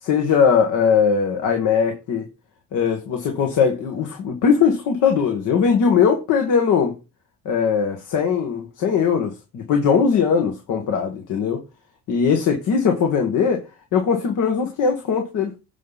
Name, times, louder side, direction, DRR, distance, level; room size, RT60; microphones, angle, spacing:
voice 1, 0.0-2.3 2.7-7.0 7.5-11.6 12.1-13.6 13.9-15.6, left 6 dB, 85° left, 1.7 m, -20 dB
9.2 x 5.5 x 4.2 m
cardioid pair, 90°, 30 cm